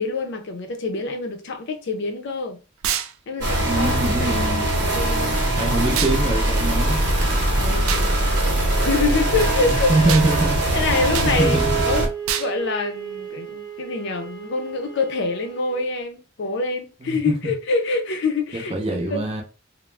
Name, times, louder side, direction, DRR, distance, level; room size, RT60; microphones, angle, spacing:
voice 1, 0.0-2.6 3.3-5.4 7.6-10.1 10.7-11.6 11.8-12.1 12.4-19.3, left 3 dB, 60° left, 0.5 m, -26 dB
sound 1, 2.8-3.1 6.0-6.2 7.9-8.1 10.1-10.3 11.1-11.3 12.3-12.5, right 9 dB, 90° right, 0.3 m, -25 dB
sound 2, 3.4-12.1, right 1 dB, 60° right, 0.9 m, -21 dB
voice 2, 3.6-4.7 5.6-7.0 9.6-10.8 11.2-11.8 17.0-17.3 18.5-19.4, right 2 dB, 30° right, 0.6 m, -24 dB
Wind instrument woodwind instrument, 11.4-15.9, right 7 dB, 5° left, 0.7 m, -34 dB
2.3 x 2.0 x 3.2 m
head